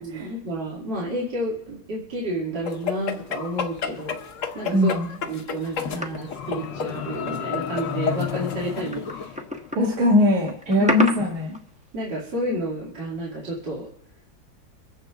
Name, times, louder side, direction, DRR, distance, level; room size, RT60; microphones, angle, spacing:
voice 1, 0.0-4.2 4.5-4.9 5.2-9.4 10.8-10.9 11.9-13.9, right 1 dB, 65° right, -5 dB, 2.6 m, -30 dB
sound 1, 2.7-9.3, left 6 dB, 50° left, 1.1 m, -32 dB
voice 2, 4.7-5.1 9.7-11.6, left 1 dB, 40° right, -2 dB, 2.4 m, -20 dB
sound 2, 5.8-10.1, left 9 dB, 70° left, 1.4 m, -33 dB
sound 3, 6.0-7.3 7.7-7.8 8.7-11.8 12.2-12.3, equal, 5° right, 0.7 m, -31 dB
24.0 x 8.6 x 3.5 m, 0.74 s
omnidirectional pair, 2.1 m